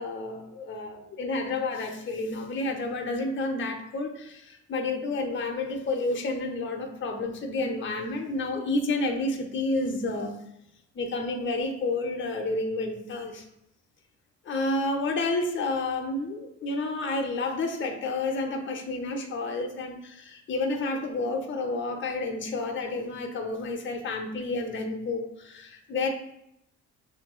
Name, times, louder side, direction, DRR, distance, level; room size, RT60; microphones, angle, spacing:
voice 1, 0.0-10.4 10.9-13.4 14.4-26.1, left 2 dB, 40° left, 2 dB, 0.7 m, -30 dB
5.7 x 3.0 x 2.2 m, 0.78 s
cardioid pair, 90°, 30 cm